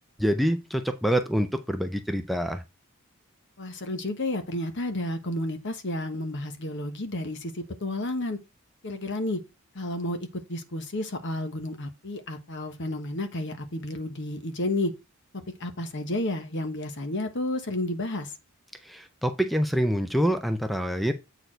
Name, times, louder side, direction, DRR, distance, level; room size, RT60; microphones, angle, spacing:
voice 1, 0.2-2.6 18.8-21.1, equal, ahead, 0.5 m, -26 dB
voice 2, 3.6-8.4 8.8-9.4 9.7-14.9 15.6-18.3, left 1 dB, 55° left, 1.1 m, -31 dB
8.0 x 4.5 x 4.5 m
head